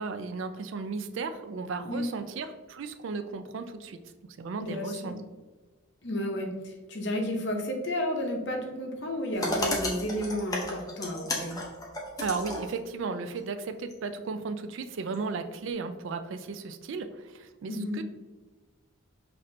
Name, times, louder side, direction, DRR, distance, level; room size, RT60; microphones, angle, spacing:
voice 1, 0.0-5.2 12.2-18.0, right 4 dB, 65° right, 8 dB, 0.3 m, -35 dB
voice 2, 1.8-2.2 4.6-5.2 6.0-11.6 17.7-18.0, left 1 dB, 55° left, 2 dB, 0.7 m, -32 dB
sound 1, 9.3-12.8 13.9-14.0 15.1-15.2, left 1 dB, 20° left, 0.7 m, -33 dB
5.6 x 2.6 x 3.2 m, 1.2 s
head